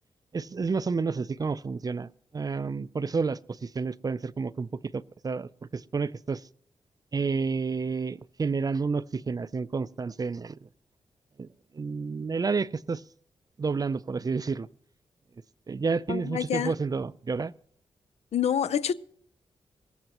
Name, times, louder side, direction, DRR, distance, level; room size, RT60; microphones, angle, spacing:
voice 1, 0.3-6.4 7.1-10.7 11.4-11.5 11.7-13.0 13.6-14.7 15.7-17.5, right 4 dB, 35° right, 0.4 m, -30 dB
voice 2, 16.1-16.7 18.3-18.9, left 9 dB, 75° left, 0.5 m, -27 dB
18.5 x 15.5 x 3.0 m
cardioid pair, 65°, 11 cm